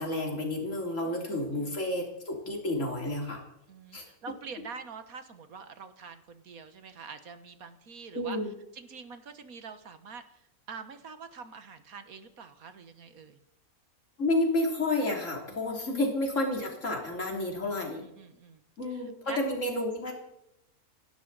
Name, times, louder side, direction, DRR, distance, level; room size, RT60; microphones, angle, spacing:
voice 1, 0.0-3.4 3.9-4.0 8.1-8.5 14.2-18.1 18.8-20.1, left 1 dB, 55° left, 1 dB, 3.5 m, -30 dB
voice 2, 1.0-1.7 3.7-8.4 8.7-13.4 15.5-16.0 17.9-18.6 18.9-19.4, right 5 dB, 70° right, 9 dB, 1.7 m, -46 dB
27.5 x 12.0 x 4.1 m, 0.82 s
omnidirectional pair, 1.6 m